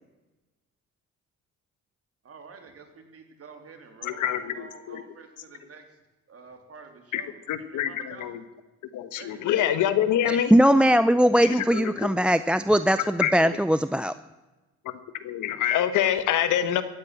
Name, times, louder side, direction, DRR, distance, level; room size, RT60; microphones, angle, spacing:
voice 1, 2.2-5.8 6.3-8.4 9.2-9.6, right 5 dB, 50° right, 5 dB, 3.0 m, -48 dB
voice 2, 4.0-5.0 7.1-7.2 7.5-8.4 8.9-10.5 11.5-12.1 13.2-13.3 15.2-16.8, left 10 dB, 80° left, 11 dB, 1.4 m, -26 dB
voice 3, 10.3-14.1, equal, 5° right, 13 dB, 0.5 m, -20 dB
15.0 x 9.5 x 9.1 m, 1.1 s
cardioid pair, 90°, 30 cm